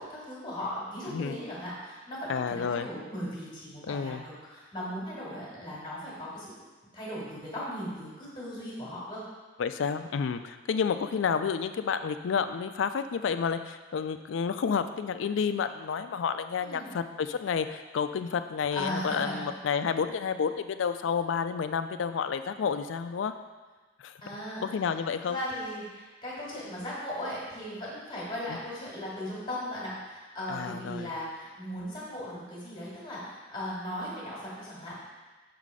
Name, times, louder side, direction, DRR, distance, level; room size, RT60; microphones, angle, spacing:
voice 1, 0.0-6.5 6.9-9.2 16.6-16.9 18.7-19.4 24.2-24.9 25.2-35.0, left 1 dB, 25° left, -7 dB, 2.1 m, -37 dB
voice 2, 2.3-2.9 3.8-4.2 9.6-23.3 24.0-24.2 24.6-25.4 28.5-28.6 30.5-31.1, left 6 dB, 80° left, 10 dB, 0.4 m, -30 dB
6.5 x 4.1 x 4.7 m, 1.3 s
head